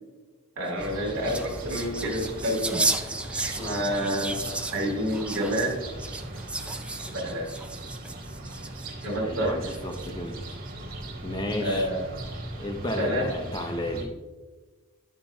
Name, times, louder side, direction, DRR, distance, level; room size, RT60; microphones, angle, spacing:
voice 1, 0.6-3.1 3.4-4.4 4.7-5.8 7.0-7.5 9.0-9.5 11.6-12.0 12.8-13.3, equal, 70° right, -4 dB, 2.7 m, -29 dB
sound 1, 0.7-9.1 9.7-10.3, right 2 dB, 5° right, 0.3 m, -33 dB
sound 2, 0.8-14.0, right 1 dB, 40° right, 2.1 m, -39 dB
voice 2, 9.2-10.4 11.2-11.9 12.5-14.1, left 1 dB, 20° left, 5 dB, 0.7 m, -32 dB
11.0 x 7.1 x 2.7 m, 1.3 s
head